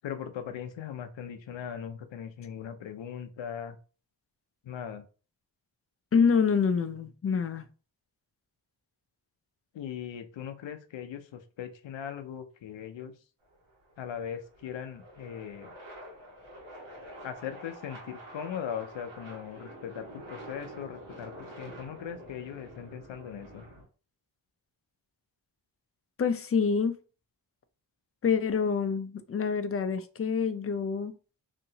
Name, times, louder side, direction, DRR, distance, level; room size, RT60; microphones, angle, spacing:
voice 1, 0.0-3.8 4.6-5.0 9.7-13.1 14.0-15.7 17.2-23.6, left 8 dB, 75° left, 0.6 m, -39 dB
voice 2, 6.1-7.6 26.2-27.0 28.2-31.1, left 6 dB, 30° left, 0.4 m, -26 dB
sound 1, 13.4-23.8, right 1 dB, 75° right, 1.4 m, -47 dB
2.8 x 2.6 x 2.7 m
cardioid pair, 50°, 45 cm